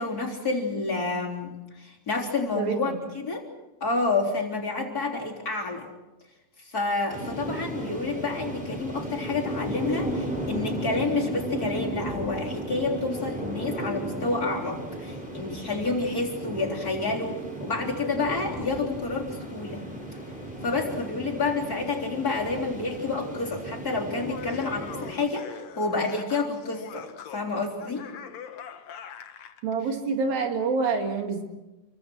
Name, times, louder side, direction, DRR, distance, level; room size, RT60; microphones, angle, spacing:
voice 1, 0.0-3.4 3.8-5.9 6.6-19.9 20.6-28.1, left 3 dB, 25° left, -2 dB, 3.8 m, -29 dB
voice 2, 2.6-3.0 29.6-31.4, right 4 dB, 85° right, 4 dB, 4.3 m, -27 dB
sound 1, 7.1-25.1, right 1 dB, ahead, 6.3 m, -35 dB
Laughter, 24.0-29.6, left 8 dB, 60° left, 2.2 m, -42 dB
28.5 x 24.0 x 6.3 m, 1.0 s
omnidirectional pair, 4.0 m